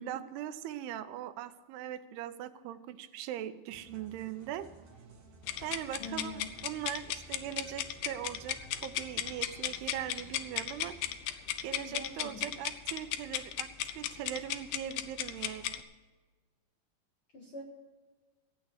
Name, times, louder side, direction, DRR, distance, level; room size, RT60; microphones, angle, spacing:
voice 1, 0.0-4.7 5.6-11.2 11.6-13.7 14.0-15.8, right 11 dB, 90° right, 11 dB, 2.8 m, -40 dB
sound 1, 3.7-11.1, right 4 dB, 45° right, 2.4 m, -56 dB
sound 2, 5.4-15.8, left 12 dB, 80° left, 2.5 m, -36 dB
voice 2, 6.0-6.5 11.8-12.6 17.3-17.6, left 2 dB, 60° left, 0 dB, 1.4 m, -44 dB
15.5 x 8.9 x 6.5 m, 1.4 s
omnidirectional pair, 4.5 m